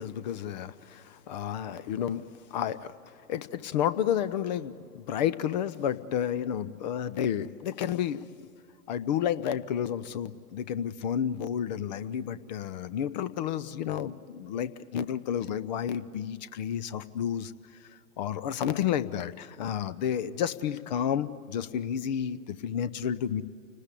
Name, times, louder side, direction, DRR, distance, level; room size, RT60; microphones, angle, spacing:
voice 1, 0.0-2.9 3.3-8.5 8.9-17.5 18.2-23.4, left 9 dB, 30° left, 16 dB, 0.6 m, -31 dB
29.0 x 19.5 x 8.4 m, 2.2 s
figure-of-eight pair, 115°, 46 cm